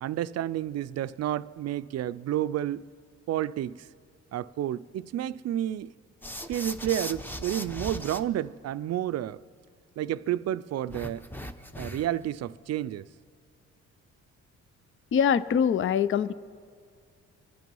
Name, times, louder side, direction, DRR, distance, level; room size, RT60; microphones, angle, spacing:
voice 1, 0.0-2.8 3.3-3.9 4.3-5.9 6.5-9.4 10.0-11.3 11.8-13.1, right 12 dB, 55° right, 0.5 m, -30 dB
sound 1, 6.2-8.2 10.9-12.2, equal, 5° left, 0.8 m, -38 dB
voice 2, 15.1-16.3, left 7 dB, 40° left, 0.5 m, -23 dB
25.5 x 9.3 x 5.4 m
cardioid pair, 90°, 30 cm